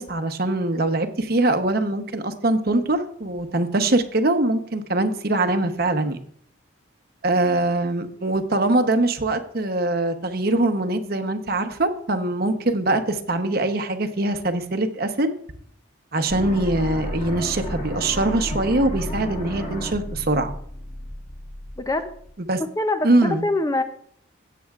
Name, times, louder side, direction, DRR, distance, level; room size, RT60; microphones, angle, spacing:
voice 1, 0.0-6.2 7.2-15.3 16.1-20.5 22.5-22.6 23.0-23.4, right 2 dB, 50° right, 8 dB, 0.9 m, -22 dB
sound 1, 16.3-22.3, equal, 40° left, 2.0 m, -32 dB
voice 2, 21.8-22.1 22.6-23.8, left 2 dB, 15° left, 8 dB, 0.5 m, -24 dB
16.0 x 8.5 x 2.4 m, 0.64 s
head